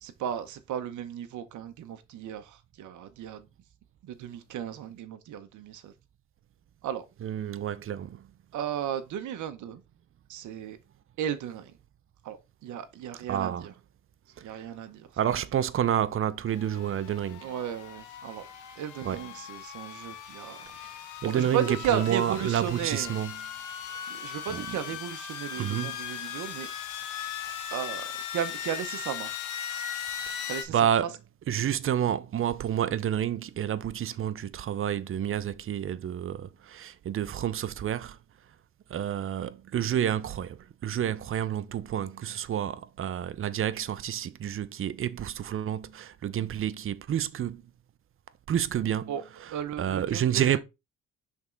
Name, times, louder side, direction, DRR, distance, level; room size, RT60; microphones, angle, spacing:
voice 1, 0.0-3.5 4.1-5.9 6.8-7.1 8.5-9.8 10.3-10.8 11.2-11.7 12.2-13.7 14.4-15.1 17.4-18.4 18.8-20.8 21.2-23.2 24.1-26.7 27.4-29.4 30.4-31.1 49.1-50.6, right 9 dB, 75° right, 0.8 m, -35 dB
voice 2, 7.2-8.3 13.3-13.7 14.4-14.5 15.2-17.5 19.0-19.2 20.7-20.9 21.2-23.4 24.5-24.8 25.6-26.0 30.7-31.1 31.5-38.2 38.9-47.6 48.5-49.1 49.8-50.6, right 10 dB, 45° right, 0.6 m, -29 dB
sound 1, 16.5-30.6, left 9 dB, 85° left, 1.3 m, -38 dB
6.0 x 3.6 x 4.3 m
cardioid pair, 90°, 30 cm